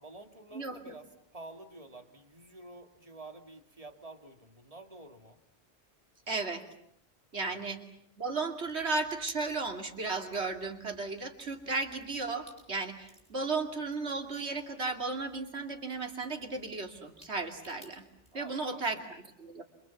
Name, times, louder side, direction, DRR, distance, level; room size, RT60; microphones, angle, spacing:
voice 1, 0.0-5.4 7.3-7.6 18.3-19.1, right 2 dB, 30° right, 6 dB, 2.5 m, -50 dB
voice 2, 0.5-0.9 6.3-6.6 7.3-7.8 8.2-18.0 18.3-19.6, right 3 dB, 60° right, 4 dB, 3.0 m, -35 dB
sound 1, 8.6-18.3, equal, 5° left, 7.1 m, -59 dB
29.0 x 26.5 x 7.3 m, 0.71 s
omnidirectional pair, 1.2 m